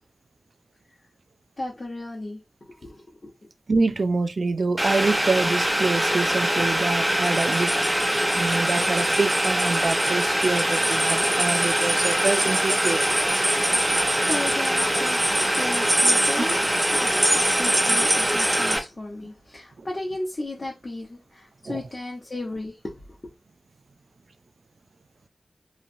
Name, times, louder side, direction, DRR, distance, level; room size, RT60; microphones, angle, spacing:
voice 1, 1.6-3.3 14.1-16.6 16.9-23.2, left 2 dB, 50° left, 1.0 m, -35 dB
voice 2, 3.7-7.7 8.3-13.0 21.7-21.8, right 3 dB, 70° right, 0.3 m, -26 dB
Boiling, 4.8-18.8, equal, 10° right, 0.7 m, -24 dB
sound 1, 7.1-18.7, right 1 dB, 50° right, 1.0 m, -27 dB
3.0 x 2.5 x 2.6 m
wide cardioid pair, 65°, 0 cm